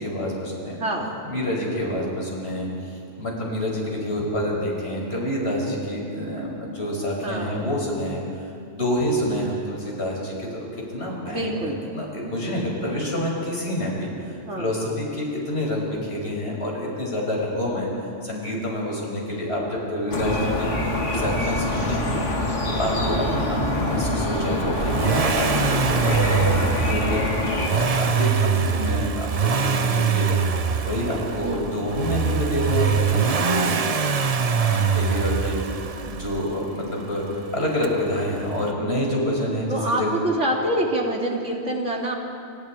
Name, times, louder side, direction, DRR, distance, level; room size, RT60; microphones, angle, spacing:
voice 1, 0.0-0.8 1.2-17.9 18.2-22.1 22.7-33.7 34.5-40.2, left 1 dB, 60° left, -3 dB, 6.2 m, -27 dB
voice 2, 7.2-7.7 11.3-11.8 14.5-14.7 31.4-31.7 39.7-42.2, right 1 dB, 85° right, -1 dB, 3.4 m, -26 dB
sound 1, 20.1-27.7, left 1 dB, 90° left, 2.8 m, -25 dB
Accelerating revving vroom, 24.6-36.5 37.8-37.9, right 6 dB, 35° right, 0.7 m, -24 dB
29.0 x 27.0 x 4.6 m, 2.7 s
omnidirectional pair, 1.2 m